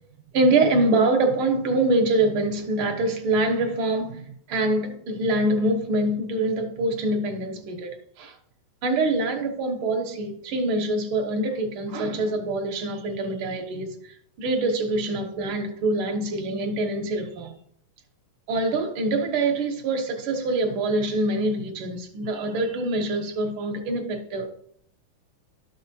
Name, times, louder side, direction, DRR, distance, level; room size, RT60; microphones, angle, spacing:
voice 1, 0.3-8.3 8.8-17.5 18.5-24.6, right 2 dB, 60° right, 1.5 m, -25 dB
13.0 x 4.8 x 2.7 m
omnidirectional pair, 3.6 m